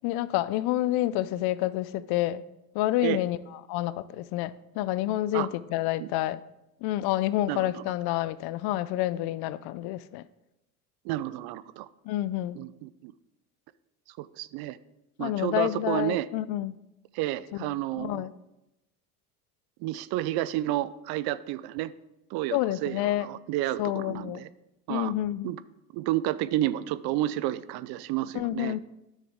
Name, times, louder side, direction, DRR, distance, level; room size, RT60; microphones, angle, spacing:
voice 1, 0.0-2.4 2.7-3.4 3.7-6.4 6.8-10.2 12.0-12.6 15.2-16.8 17.6-17.7 18.0-18.3 22.5-23.3 23.8-24.4 24.9-25.5 28.3-28.8, left 14 dB, 55° left, 17 dB, 0.5 m, -28 dB
voice 2, 7.5-7.8 11.0-11.9 12.6-13.1 14.2-14.8 15.2-16.3 17.1-18.3 19.8-21.9 22.3-24.5 24.9-25.1 25.4-25.6 25.9-28.8, right 14 dB, 55° right, 16 dB, 0.5 m, -31 dB
10.0 x 6.5 x 3.5 m, 0.91 s
hypercardioid pair, 80°, 45 cm